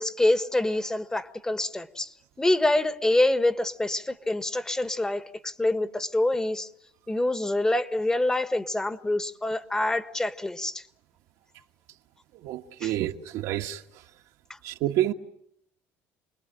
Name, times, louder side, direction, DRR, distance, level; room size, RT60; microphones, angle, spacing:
voice 1, 0.0-2.1 2.4-6.7 7.1-10.8 12.8-12.9, left 1 dB, 10° left, 1.2 m, -26 dB
voice 2, 12.4-13.8 14.6-15.1, right 13 dB, 80° right, 1.6 m, -28 dB
28.5 x 20.5 x 8.8 m
cardioid pair, 125°, 6 cm